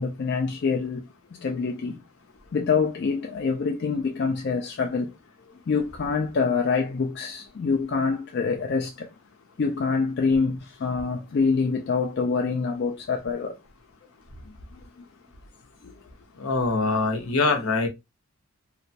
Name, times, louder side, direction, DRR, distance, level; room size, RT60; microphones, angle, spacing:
voice 1, 0.0-2.0 2.5-5.1 5.7-9.1 9.6-13.6 14.5-15.0 15.8-15.9, left 5 dB, 50° left, 0.3 m, -26 dB
voice 2, 16.4-17.9, left 3 dB, 75° left, 0.7 m, -23 dB
2.9 x 2.2 x 2.7 m
head